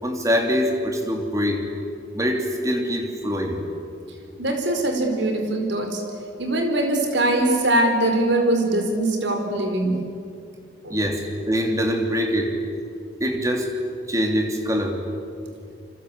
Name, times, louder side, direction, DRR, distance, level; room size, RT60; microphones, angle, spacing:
voice 1, 0.0-1.6 2.1-3.6 10.9-12.5 13.2-13.7 14.1-15.0, equal, 15° right, 3 dB, 3.2 m, -23 dB
voice 2, 4.4-6.0 6.4-10.0 10.8-11.0, right 1 dB, 75° right, 4 dB, 4.7 m, -22 dB
27.5 x 25.5 x 8.5 m, 2.4 s
head